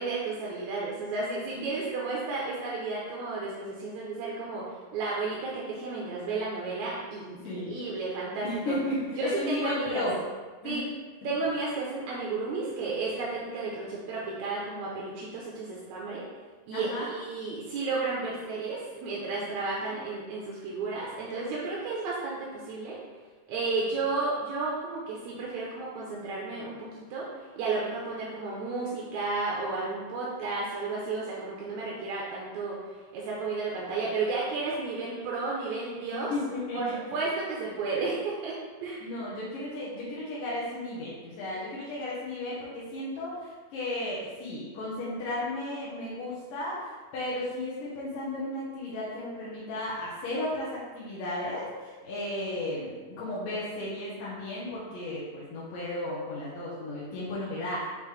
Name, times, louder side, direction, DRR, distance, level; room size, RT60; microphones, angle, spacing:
voice 1, 0.0-8.8 9.2-10.0 10.6-10.8 11.2-16.2 16.7-23.0 23.5-36.3 36.7-39.0, right 3 dB, 75° right, -4 dB, 1.8 m, -33 dB
voice 2, 7.3-7.7 8.4-10.1 10.6-10.8 16.7-17.1 19.8-20.0 36.3-37.0 39.0-57.9, left 1 dB, 75° left, -8 dB, 2.7 m, -34 dB
6.4 x 5.0 x 3.4 m, 1.4 s
omnidirectional pair, 4.1 m